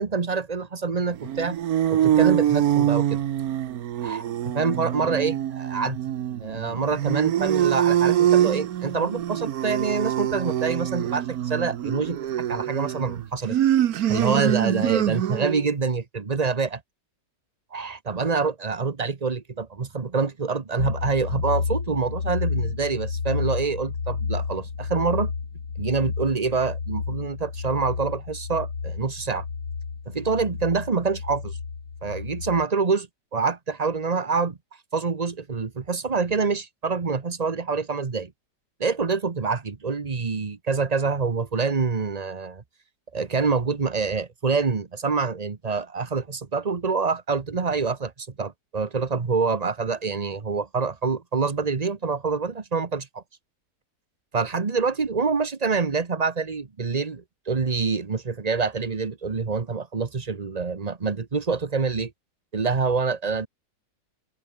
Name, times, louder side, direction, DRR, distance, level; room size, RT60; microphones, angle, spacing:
voice 1, 0.0-1.6 1.9-3.2 4.0-6.0 6.4-12.2 12.5-13.6 14.1-16.8 17.7-25.3 25.8-29.4 30.1-31.6 32.0-34.6 34.9-38.3 38.8-42.6 43.1-53.2 54.3-62.1 62.5-63.5, right 4 dB, 25° right, 1.0 m, -26 dB
sound 1, 1.2-15.7, right 11 dB, 60° right, 1.2 m, -24 dB
sound 2, 20.8-32.7, left 5 dB, 85° left, 3.2 m, -31 dB
omnidirectional pair, 1.9 m